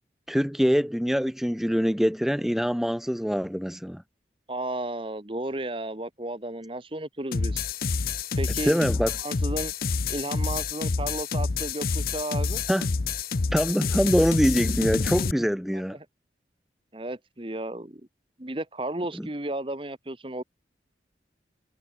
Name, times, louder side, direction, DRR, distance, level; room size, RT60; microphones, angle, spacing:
voice 1, 0.3-4.0 8.6-9.1 12.7-12.9 13.5-16.0, equal, ahead, 0.9 m, -24 dB
voice 2, 4.5-7.7 8.4-8.8 9.2-9.7 10.1-12.6 15.9-16.0 16.9-18.0 18.4-20.4, right 1 dB, 30° right, 1.5 m, -33 dB
sound 1, 7.3-15.3, left 4 dB, 55° left, 0.7 m, -28 dB
head